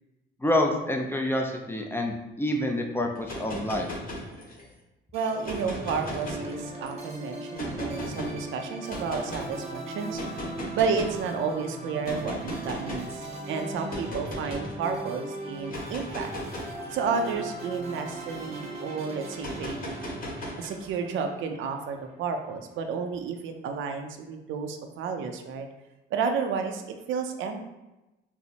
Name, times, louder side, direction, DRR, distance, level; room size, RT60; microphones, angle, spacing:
voice 1, 0.4-3.9, left 1 dB, 10° left, 2 dB, 0.4 m, -27 dB
sound 1, 3.1-4.7 5.3-6.9 7.5-8.3 8.9-9.5 10.1-11.2 12.0-13.1 13.9-14.7 15.6-18.4 19.4-20.9, equal, 45° left, 1.2 m, -37 dB
sound 2, 5.1-22.5, right 2 dB, 30° right, 0.6 m, -39 dB
voice 2, 5.1-10.2 10.7-16.3 16.9-20.1 20.6-25.7 26.1-26.8 27.1-27.7, right 5 dB, 80° right, 5 dB, 0.4 m, -31 dB
4.3 x 2.0 x 2.8 m, 1.0 s
cardioid pair, 90°, 20 cm